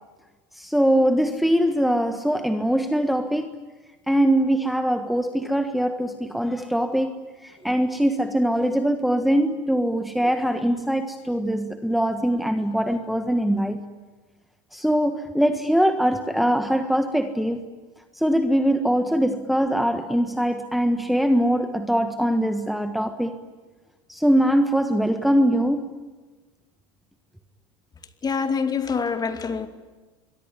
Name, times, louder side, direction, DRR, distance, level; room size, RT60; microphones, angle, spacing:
voice 1, 0.5-3.6 4.1-7.1 7.4-13.8 14.7-17.6 18.1-23.4 24.1-25.8, equal, ahead, 1.5 m, -22 dB
voice 2, 28.2-29.7, left 5 dB, 25° left, 2.6 m, -25 dB
26.0 x 23.0 x 9.9 m
hypercardioid pair, 95°, 16 cm